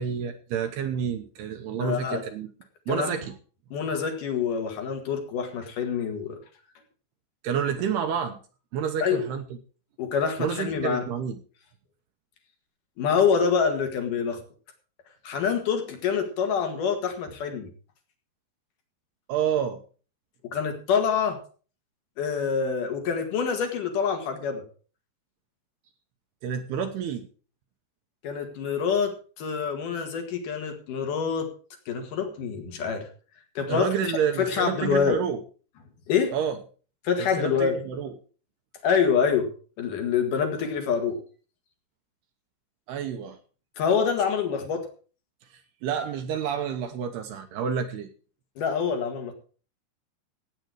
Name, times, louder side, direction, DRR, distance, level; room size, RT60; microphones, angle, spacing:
voice 1, 0.0-2.5 2.9-3.3 3.8-4.0 7.4-8.4 8.7-9.4 10.4-11.4 19.3-19.8 26.4-27.3 33.7-35.4 36.3-36.6 37.2-38.1 42.9-43.4 45.5-48.1, right 7 dB, 75° right, 6 dB, 2.7 m, -29 dB
voice 2, 1.8-2.2 2.9-3.1 3.7-6.4 9.0-9.2 10.0-11.0 13.0-14.4 15.2-17.7 20.5-21.4 22.2-24.6 28.2-31.5 31.9-33.1 33.5-35.2 36.1-36.3 37.0-37.8 38.8-39.5 39.8-41.2 43.8-44.8 48.6-49.3, left 6 dB, 55° left, 5 dB, 2.9 m, -26 dB
16.0 x 8.9 x 4.7 m, 0.39 s
omnidirectional pair, 5.3 m